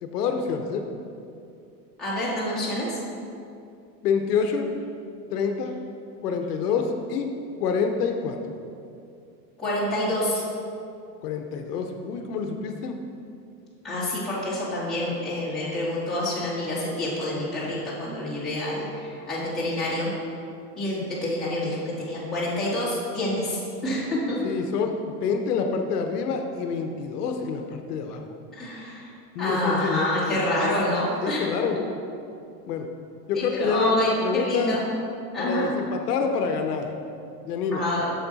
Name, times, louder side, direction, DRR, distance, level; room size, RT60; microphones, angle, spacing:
voice 1, 0.0-0.9 4.0-4.7 5.3-5.7 6.2-7.3 7.6-8.4 11.2-13.0 24.4-28.2 29.3-30.7 31.2-31.8 32.7-32.9 33.3-34.8 35.4-36.9 37.4-37.8, left 5 dB, 70° left, 5 dB, 0.8 m, -27 dB
voice 2, 2.0-3.0 9.6-10.4 13.8-20.1 20.8-24.4 28.5-29.1 29.4-31.4 31.7-31.8 33.3-35.0 35.3-35.7 37.7-38.1, left 1 dB, ahead, -11 dB, 1.6 m, -27 dB
8.3 x 6.6 x 4.0 m, 2.5 s
supercardioid pair, 170°, 49 cm